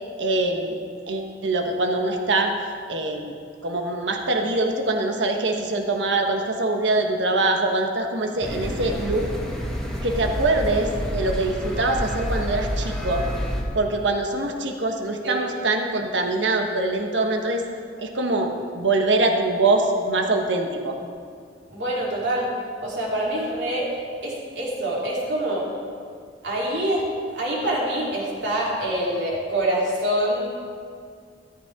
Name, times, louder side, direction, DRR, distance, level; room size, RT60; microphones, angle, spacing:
voice 1, 0.2-0.8 1.1-2.5 2.9-3.3 3.6-9.3 10.0-13.3 13.7-17.6 18.0-21.0, right 2 dB, 85° right, 3 dB, 1.3 m, -23 dB
sound 1, 8.4-13.6, equal, 5° left, 1.8 m, -29 dB
voice 2, 21.7-22.5 22.8-23.9 24.2-25.6 26.4-27.0 27.3-30.5, right 1 dB, 70° right, -5 dB, 3.7 m, -25 dB
14.0 x 13.5 x 3.7 m, 2.2 s
head